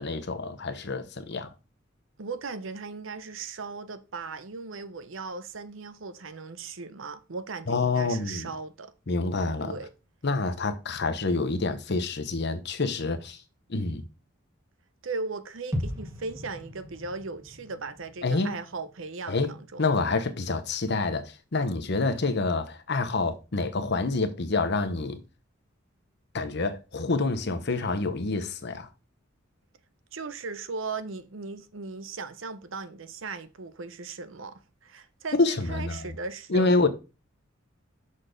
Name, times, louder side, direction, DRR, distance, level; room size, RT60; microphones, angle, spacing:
voice 1, 0.0-1.5 7.7-8.5 9.1-9.8 10.2-13.4 13.7-14.0 18.2-18.5 19.3-19.5 19.8-25.2 26.3-28.9 35.4-36.1 36.5-36.9, left 3 dB, 55° left, 0.9 m, -27 dB
voice 2, 2.2-8.9 9.6-9.9 15.0-19.9 30.1-36.7, right 4 dB, 70° right, 0.7 m, -37 dB
sound 1, 15.7-19.7 20.0-20.1, equal, 15° right, 1.1 m, -38 dB
6.3 x 4.2 x 5.1 m
head